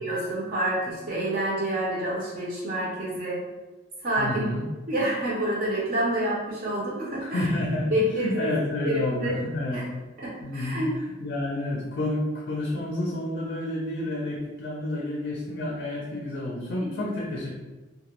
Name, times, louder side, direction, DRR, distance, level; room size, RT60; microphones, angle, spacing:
voice 1, 0.0-3.4 4.0-4.5 4.9-7.5 7.9-8.5 8.8-9.3 9.7-9.8 10.2-11.0 16.8-16.9, right 1 dB, 45° right, -5 dB, 0.5 m, -28 dB
voice 2, 4.2-4.6 7.2-9.9 10.4-10.8 11.2-17.5, left 1 dB, 50° left, -3 dB, 0.4 m, -29 dB
2.2 x 2.0 x 2.8 m, 1.2 s
head